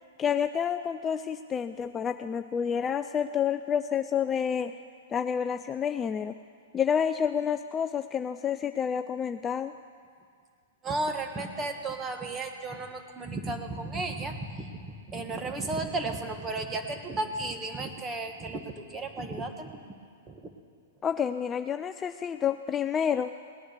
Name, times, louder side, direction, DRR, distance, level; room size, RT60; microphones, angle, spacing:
voice 1, 0.2-4.7 5.1-6.3 6.7-9.7 21.0-23.3, left 8 dB, 20° left, 9 dB, 0.4 m, -29 dB
voice 2, 10.8-19.7 20.3-20.4, right 2 dB, 20° right, 5 dB, 1.4 m, -34 dB
18.5 x 9.6 x 6.7 m, 2.2 s
hypercardioid pair, 130°, 0 cm